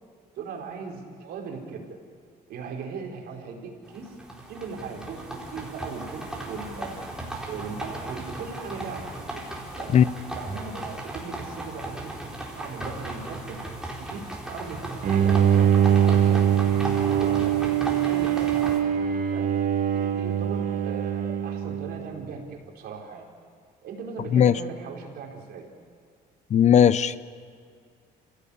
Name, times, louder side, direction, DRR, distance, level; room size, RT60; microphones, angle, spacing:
voice 1, 0.3-2.0 2.5-4.2 4.5-7.0 7.4-9.4 9.7-10.0 10.3-12.1 12.5-13.7 14.0-16.4 16.9-18.8 19.3-19.5 19.9-23.3 23.8-25.7, right 5 dB, 70° right, 0 dB, 4.9 m, -38 dB
sound 1, 3.8-18.8, right 1 dB, 5° right, 4.5 m, -36 dB
Bowed string instrument, 15.0-22.3, right 9 dB, 50° right, 1.8 m, -23 dB
voice 2, 26.5-27.2, left 9 dB, 45° left, 16 dB, 0.7 m, -17 dB
28.0 x 17.0 x 8.7 m, 2.1 s
cardioid pair, 110°, 17 cm